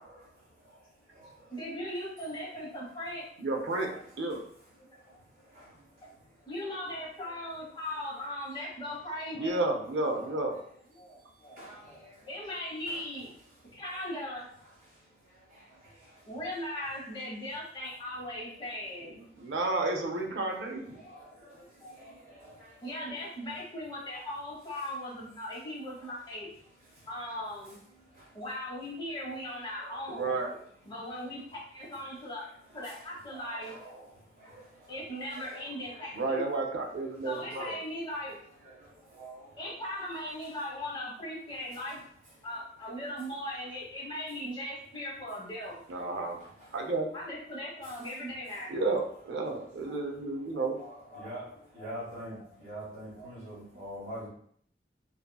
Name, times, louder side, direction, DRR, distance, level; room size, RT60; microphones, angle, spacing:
voice 1, 1.5-3.2 3.9-4.0 6.0-6.1 6.5-9.6 10.9-13.3 13.7-14.5 16.2-19.1 20.9-21.9 22.8-26.5 27.1-27.8 28.3-30.4 30.8-32.4 32.7-33.8 34.9-36.6 37.2-38.4 39.0-39.2 39.6-42.1 42.4-45.8 47.1-48.7 50.5-50.7 51.0-51.9 52.3-52.7 53.1-53.8, left 1 dB, 25° left, -5 dB, 0.9 m, -39 dB
voice 2, 3.4-3.9 4.2-4.4 9.3-10.5 19.4-21.0 30.1-30.5 36.2-37.7 45.9-46.4 46.7-47.1 48.7-50.8, right 2 dB, 80° right, 3 dB, 0.5 m, -31 dB
voice 3, 33.3-34.0 34.5-34.6 35.4-35.5 35.9-36.0 39.2-39.3 50.8-51.4 51.7-54.3, equal, 40° right, -11 dB, 1.1 m, -43 dB
2.5 x 2.5 x 2.2 m, 0.64 s
head